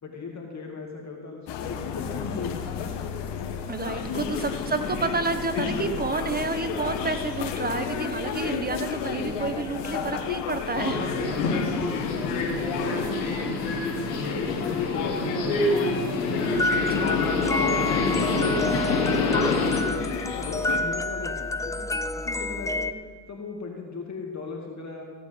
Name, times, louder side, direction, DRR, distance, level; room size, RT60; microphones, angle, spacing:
voice 1, 0.0-2.6 4.1-4.5 11.8-13.4 13.8-16.3 16.8-19.5 19.8-22.9 23.3-25.0, left 4 dB, 35° left, 1 dB, 2.2 m, -38 dB
sound 1, 1.5-20.8, left 7 dB, 65° left, 1.5 m, -33 dB
voice 2, 3.7-11.1 17.0-17.2, right 3 dB, 20° right, 8 dB, 1.3 m, -29 dB
Subway metro underground, 10.7-19.8, left 3 dB, 85° left, 2.2 m, -26 dB
sound 2, 16.6-22.9, left 2 dB, 5° left, 0.5 m, -29 dB
15.5 x 8.8 x 5.4 m, 1.5 s
hypercardioid pair, 65°, 45 cm